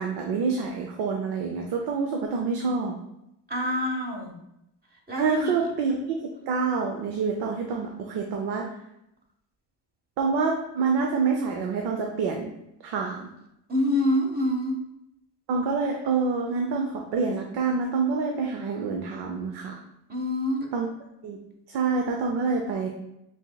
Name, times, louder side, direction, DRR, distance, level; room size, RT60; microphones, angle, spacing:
voice 1, 0.0-2.9 5.2-8.7 10.2-12.5 12.8-13.3 15.5-19.8 20.7-20.9 21.2-21.4 21.7-22.9, right 4 dB, 85° right, 2 dB, 0.6 m, -27 dB
voice 2, 3.5-4.3 5.1-5.5 13.7-14.8 20.1-20.7, left 1 dB, 25° right, 0 dB, 0.9 m, -26 dB
6.0 x 2.8 x 2.2 m, 0.83 s
cardioid pair, 105°, 38 cm